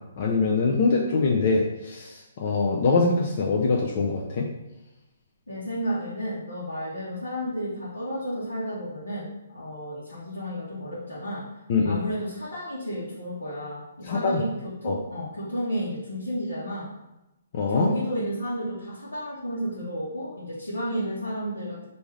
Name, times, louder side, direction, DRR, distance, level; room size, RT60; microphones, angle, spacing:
voice 1, 0.2-4.5 11.7-12.0 14.0-14.4 14.8-15.0 17.5-17.9, left 4 dB, 50° left, -2 dB, 0.5 m, -23 dB
voice 2, 5.5-11.4 11.8-14.5 14.8-16.9 17.7-21.9, equal, 90° left, -9 dB, 1.1 m, -32 dB
3.4 x 2.7 x 3.2 m, 0.95 s
figure-of-eight pair, 135°, 0 cm